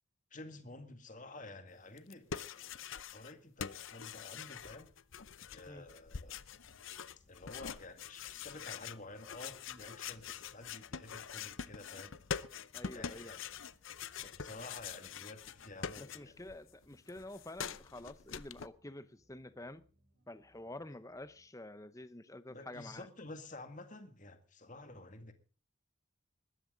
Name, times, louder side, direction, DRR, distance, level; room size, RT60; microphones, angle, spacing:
voice 1, 0.3-4.9 5.5-6.4 7.3-12.1 12.9-13.4 14.1-16.3 22.5-25.3, left 2 dB, 35° left, 2.1 m, -51 dB
sound 1, 2.0-3.3 3.6-16.6 16.8-18.7, left 7 dB, 65° left, 0.7 m, -45 dB
sound 2, 6.2-21.6, equal, 55° right, 4.7 m, -72 dB
voice 2, 12.7-13.3 16.0-19.8 20.3-23.1, left 1 dB, 15° left, 0.8 m, -48 dB
20.5 x 13.5 x 3.9 m
head